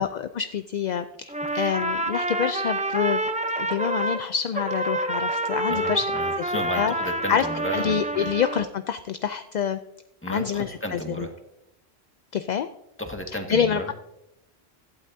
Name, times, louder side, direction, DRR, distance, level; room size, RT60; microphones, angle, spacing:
voice 1, 0.0-3.2 3.5-6.1 6.4-6.5 6.7-6.9 7.3-7.5 7.7-9.8 10.3-11.3 12.3-12.7 13.5-13.9, left 8 dB, 55° left, 10 dB, 0.5 m, -26 dB
Trumpet, 1.3-4.2 4.5-8.7, right 1 dB, 10° right, 0.4 m, -28 dB
voice 2, 5.7-8.3 10.2-11.3 13.0-13.9, equal, 10° left, 3 dB, 1.7 m, -34 dB
16.5 x 12.0 x 2.7 m, 0.83 s
omnidirectional pair, 1.1 m